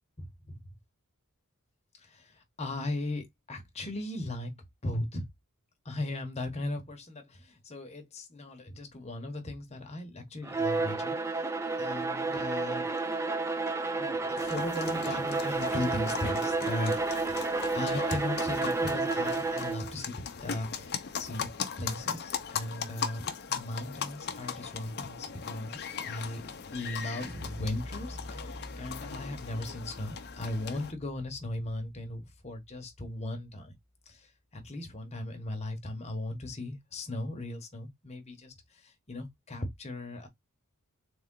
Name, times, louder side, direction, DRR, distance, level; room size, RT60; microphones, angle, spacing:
voice 1, 0.2-0.6 2.0-4.5 4.8-5.3 5.8-11.5 11.8-12.9 14.0-16.9 17.3-21.5 21.8-26.4 26.7-33.7 34.1-34.3 34.5-40.3, left 1 dB, 30° left, 1.1 m, -37 dB
Bowed string instrument, 10.4-19.9, right 3 dB, 10° right, 0.5 m, -31 dB
sound 1, 14.4-30.9, left 7 dB, 45° left, 0.7 m, -39 dB
sound 2, 27.2-32.8, left 1 dB, 50° right, 2.4 m, -45 dB
3.7 x 3.3 x 3.7 m
head